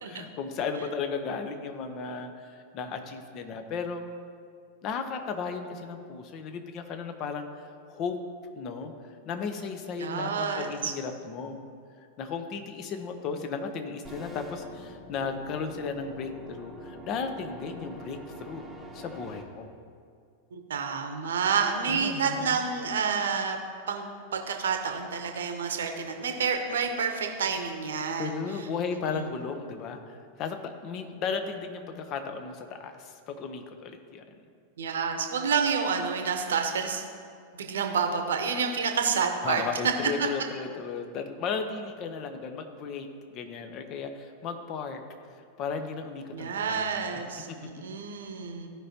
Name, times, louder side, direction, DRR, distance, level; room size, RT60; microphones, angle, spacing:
voice 1, 0.0-4.0 4.8-8.2 8.6-8.9 9.3-11.6 12.2-18.6 18.9-19.7 21.9-22.6 28.2-34.2 39.4-45.0 45.6-47.0 47.5-47.6, left 5 dB, 35° left, 7 dB, 0.8 m, -35 dB
voice 2, 10.0-10.9 20.5-23.6 23.9-24.1 24.3-28.3 29.1-29.3 34.8-37.0 37.5-39.6 46.3-48.7, right 6 dB, 65° right, 4 dB, 1.0 m, -29 dB
sound 1, 14.0-19.4, equal, 5° right, 1.1 m, -45 dB
15.5 x 5.3 x 2.9 m, 2.3 s
figure-of-eight pair, 90°, 0 cm